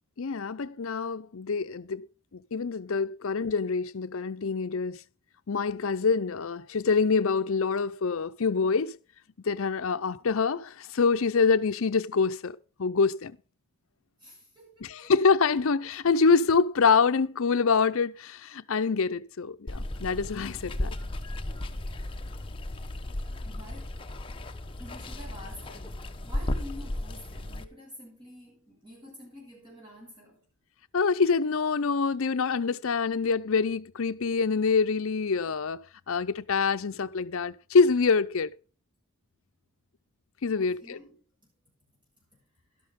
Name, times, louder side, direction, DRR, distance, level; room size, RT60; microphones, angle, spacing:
voice 1, 0.2-2.1 2.3-5.0 5.5-9.0 9.4-13.4 14.8-20.9 30.9-38.5 40.4-41.0, left 5 dB, 70° left, 0.6 m, -26 dB
voice 2, 14.2-15.1 23.4-24.0 24.8-30.4 40.5-41.2, left 1 dB, 20° right, 6.3 m, -48 dB
Water, 19.7-27.6, left 1 dB, 25° left, 0.9 m, -35 dB
12.5 x 11.5 x 3.7 m
head